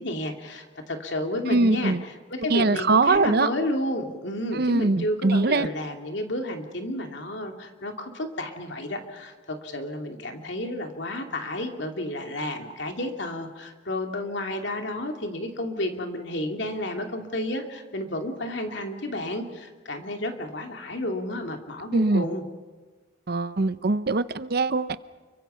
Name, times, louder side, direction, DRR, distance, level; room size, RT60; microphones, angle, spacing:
voice 1, 0.0-22.4, left 1 dB, 65° left, 4 dB, 2.8 m, -31 dB
voice 2, 1.5-2.0 2.5-3.5 4.5-5.7 21.9-22.2 23.3-25.0, right 3 dB, 55° right, 14 dB, 0.7 m, -22 dB
29.5 x 23.5 x 5.7 m, 1.3 s
head